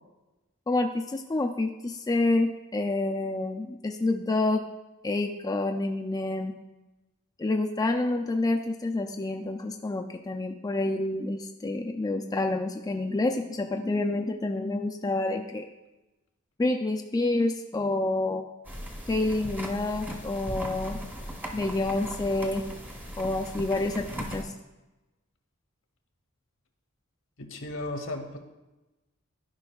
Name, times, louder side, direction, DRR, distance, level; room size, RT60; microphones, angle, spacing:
voice 1, 0.7-4.6 5.0-6.5 7.4-15.7 16.6-18.4 19.1-21.0 21.5-22.6 23.2-24.5, left 2 dB, 20° left, 3 dB, 0.3 m, -28 dB
sound 1, 18.6-24.4, equal, 10° right, 0.7 m, -38 dB
voice 2, 27.4-28.4, left 2 dB, 65° left, 5 dB, 1.0 m, -35 dB
13.0 x 5.3 x 2.3 m, 1.1 s
head